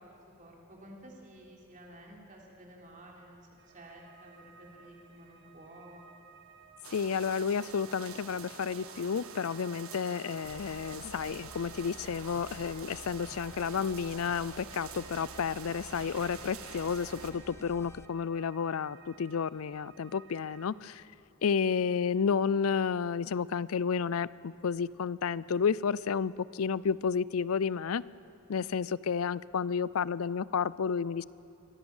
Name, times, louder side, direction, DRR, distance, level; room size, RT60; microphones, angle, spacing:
voice 1, 0.0-6.0, right 1 dB, 40° right, -1 dB, 3.7 m, -52 dB
sound 1, 3.6-20.7, right 5 dB, 55° right, 1.6 m, -57 dB
sound 2, 6.8-17.3, right 6 dB, 75° right, 1.5 m, -47 dB
voice 2, 6.9-21.0 21.4-28.0 28.5-31.2, left 6 dB, 80° left, 20 dB, 0.5 m, -31 dB
sound 3, 10.4-18.0, left 1 dB, 10° left, 0.5 m, -52 dB
23.5 x 17.0 x 7.2 m, 2.6 s
head